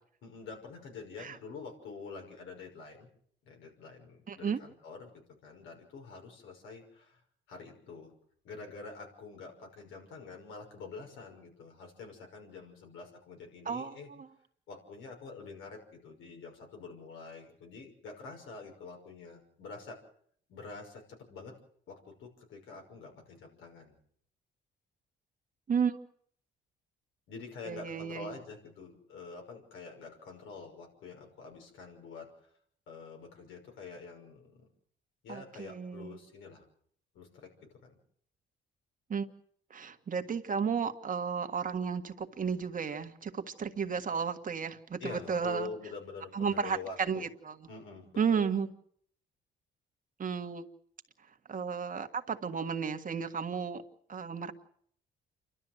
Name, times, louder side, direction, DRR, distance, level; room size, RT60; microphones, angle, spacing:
voice 1, 0.2-3.1 3.5-7.2 7.5-8.1 8.4-14.1 14.7-20.0 20.5-21.5 21.9-23.9 27.3-32.3 32.9-34.7 35.2-36.6 37.1-38.0 45.0-47.3 47.7-48.4, left 4 dB, 85° left, 2 dB, 5.9 m, -46 dB
voice 2, 4.3-4.6 13.6-14.3 25.7-26.0 27.6-28.3 35.3-36.2 39.1-39.3 39.7-45.7 46.3-47.6 48.2-48.7 50.2-50.6 51.5-53.8 54.1-54.5, right 6 dB, 40° right, 7 dB, 1.7 m, -33 dB
28.0 x 12.5 x 8.0 m, 0.64 s
cardioid pair, 90°, 20 cm